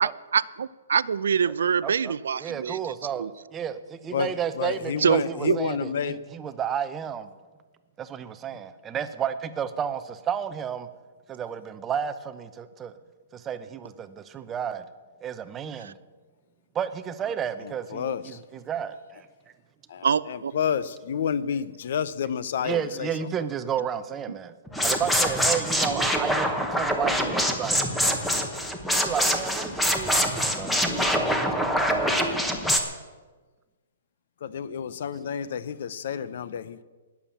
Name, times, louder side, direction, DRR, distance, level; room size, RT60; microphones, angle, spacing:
voice 1, 0.0-2.8 3.2-3.3 5.0-5.6 15.8-15.9 18.0-18.1 20.0-20.6, right 7 dB, 80° right, 18 dB, 0.5 m, -25 dB
voice 2, 1.8-7.3 8.0-10.9 11.3-12.9 13.3-14.9 15.2-16.0 16.7-19.3 22.6-24.5 24.8-27.8 28.9-30.8 31.2-32.0, right 8 dB, 15° right, 11 dB, 0.6 m, -32 dB
voice 3, 4.1-6.2 17.6-18.4 19.9-23.3 34.4-36.8, left 8 dB, 50° left, 16 dB, 0.7 m, -30 dB
sound 1, 24.7-32.8, equal, 5° left, 0.9 m, -24 dB
19.0 x 7.2 x 7.2 m, 1.3 s
hypercardioid pair, 170°, 0 cm